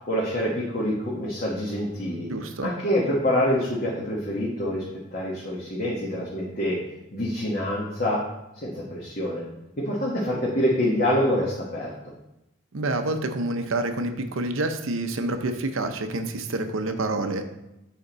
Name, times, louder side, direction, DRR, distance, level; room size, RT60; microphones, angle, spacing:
voice 1, 0.1-2.3 2.6-4.8 5.1-6.8 7.1-8.2 8.5-9.4 9.8-11.9, equal, 45° left, -5 dB, 1.2 m, -26 dB
voice 2, 2.3-2.7 12.7-17.4, right 2 dB, 90° right, 7 dB, 0.7 m, -28 dB
8.0 x 4.4 x 4.0 m, 0.92 s
head